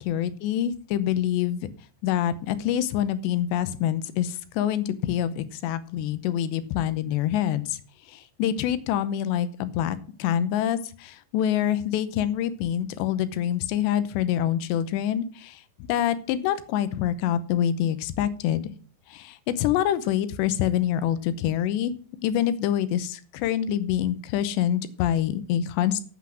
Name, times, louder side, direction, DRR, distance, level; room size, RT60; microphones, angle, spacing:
voice 1, 0.0-1.6 2.0-7.8 8.1-18.7 19.1-21.9 22.2-26.0, left 10 dB, 80° left, 13 dB, 3.0 m, -26 dB
9.3 x 8.2 x 6.3 m, 0.42 s
omnidirectional pair, 5.1 m